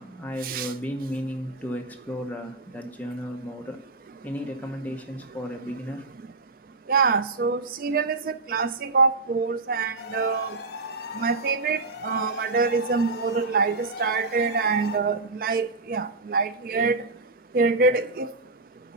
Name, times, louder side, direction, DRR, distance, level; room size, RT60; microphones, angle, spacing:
voice 1, 0.0-3.8 4.2-6.1, equal, 10° left, 0.9 m, -34 dB
voice 2, 6.9-8.2 8.5-10.6 11.2-17.0 17.5-18.3, right 4 dB, 50° right, 0.4 m, -24 dB
sound 1, 10.0-15.0, left 5 dB, 65° left, 0.7 m, -37 dB
9.8 x 4.1 x 5.4 m
head